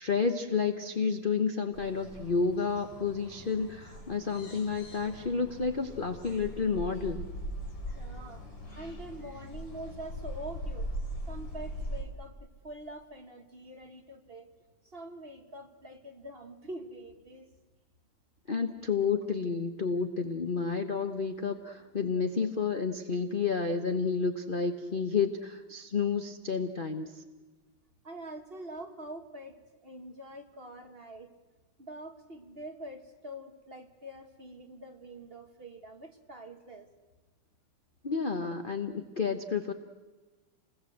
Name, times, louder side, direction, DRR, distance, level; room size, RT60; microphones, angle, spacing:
voice 1, 0.0-7.2 18.5-27.2 38.0-39.7, left 5 dB, 40° left, 7 dB, 0.7 m, -30 dB
sound 1, 1.7-12.0, equal, 60° left, 4.7 m, -41 dB
voice 2, 8.0-8.4 8.8-10.9 11.3-14.5 14.8-17.5 28.0-29.6 29.8-31.3 31.8-36.9, right 1 dB, 30° right, 5 dB, 1.4 m, -45 dB
28.5 x 20.5 x 7.9 m, 1.3 s
omnidirectional pair, 2.3 m